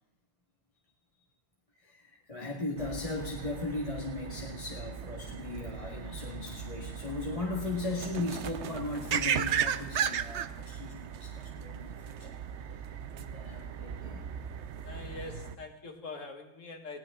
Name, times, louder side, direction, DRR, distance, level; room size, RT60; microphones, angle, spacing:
voice 1, 1.8-12.4 13.1-14.3, left 2 dB, 25° left, -1 dB, 1.9 m, -37 dB
sound 1, 2.8-15.6, right 8 dB, 60° right, 0.9 m, -36 dB
voice 2, 14.8-17.0, left 3 dB, 60° left, 5 dB, 2.2 m, -43 dB
20.0 x 18.0 x 3.7 m, 0.79 s
omnidirectional pair, 1.5 m